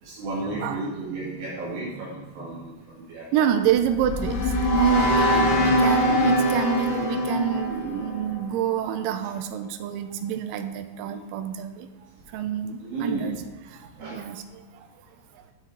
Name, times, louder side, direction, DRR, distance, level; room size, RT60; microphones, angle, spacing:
voice 1, 0.0-3.5 11.1-11.2 12.8-13.4 14.0-14.2, right 2 dB, 65° right, -7 dB, 3.8 m, -33 dB
voice 2, 3.3-4.4 4.7-11.9 12.3-13.4 14.1-14.4, right 9 dB, 85° right, 7 dB, 2.0 m, -27 dB
sound 1, 3.7-8.9, left 1 dB, 65° left, 2.4 m, -23 dB
10.5 x 5.8 x 4.6 m, 1.2 s
omnidirectional pair, 4.5 m